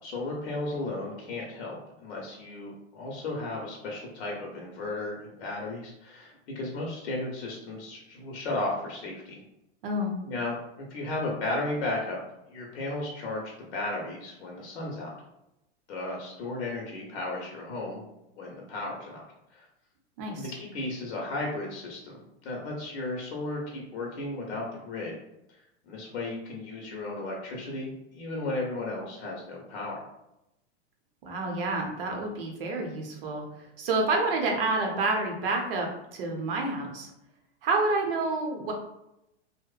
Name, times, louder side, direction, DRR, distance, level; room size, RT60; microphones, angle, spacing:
voice 1, 0.0-9.4 10.2-12.2 12.5-15.1 15.9-18.0 18.4-19.2 19.5-19.7 20.3-25.2 25.8-30.0, left 2 dB, 70° left, -2 dB, 0.7 m, -34 dB
voice 2, 20.2-20.5 31.2-33.4 33.8-37.1 37.6-38.7, right 2 dB, 55° right, 1 dB, 0.7 m, -28 dB
2.8 x 2.0 x 2.3 m, 0.87 s
supercardioid pair, 175°, 34 cm